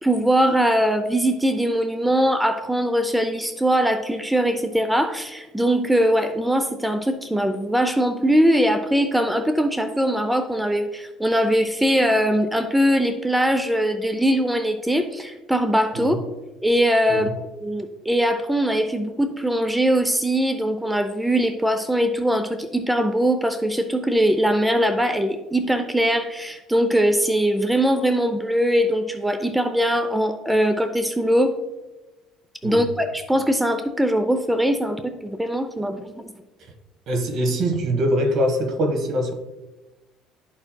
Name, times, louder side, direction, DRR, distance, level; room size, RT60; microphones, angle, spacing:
voice 1, 0.0-16.2 16.6-17.3 17.5-31.6 32.6-36.3, equal, 5° right, 7 dB, 0.4 m, -21 dB
voice 2, 32.6-32.9 37.1-39.3, equal, 60° right, 5 dB, 1.3 m, -23 dB
12.0 x 4.4 x 2.2 m, 1.1 s
cardioid pair, 110°, 0 cm